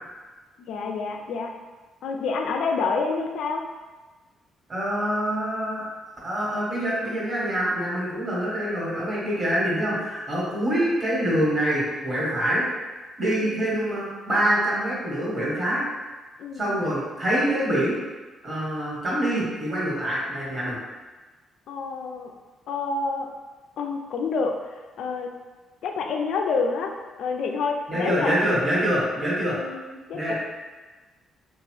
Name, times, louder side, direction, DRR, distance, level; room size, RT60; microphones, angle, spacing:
voice 1, 0.6-1.5 2.0-3.6 13.4-13.9 16.4-16.8 21.7-22.3 22.7-23.3 23.8-25.3 25.8-26.9 27.2-28.4 29.4-30.3, left 4 dB, 75° left, 3 dB, 0.3 m, -28 dB
voice 2, 4.7-5.9 6.2-12.7 13.2-15.8 16.6-18.0 18.4-20.8 27.9-29.6 30.1-30.3, right 1 dB, 40° right, -7 dB, 1.4 m, -25 dB
2.9 x 2.3 x 3.0 m, 1.3 s
cardioid pair, 90°, 0 cm